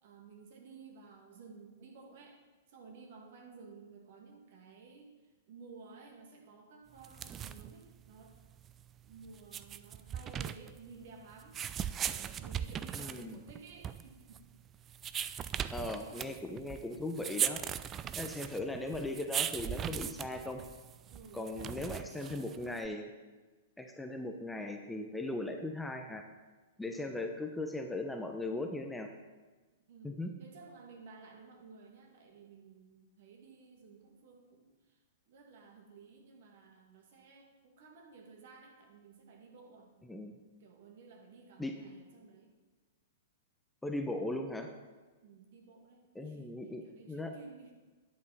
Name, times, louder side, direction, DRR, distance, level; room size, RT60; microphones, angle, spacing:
voice 1, 0.0-2.4 2.7-8.4 9.0-11.6 12.0-14.4 16.1-16.3 21.1-22.8 26.9-27.3 29.9-35.0 35.3-39.9 40.6-42.5 45.2-47.7, right 4 dB, 55° right, 1 dB, 2.2 m, -55 dB
sound 1, 7.0-22.9, right 9 dB, 25° right, 0.4 m, -39 dB
voice 2, 12.9-13.3 15.7-17.6 18.2-20.6 21.3-23.0 23.8-26.2 26.8-29.1 30.0-30.3 40.1-40.3 41.6-41.7 43.8-44.7 46.1-46.8 47.1-47.3, left 2 dB, 5° left, 4 dB, 0.8 m, -38 dB
10.0 x 8.5 x 4.2 m, 1.3 s
figure-of-eight pair, 105°, 0 cm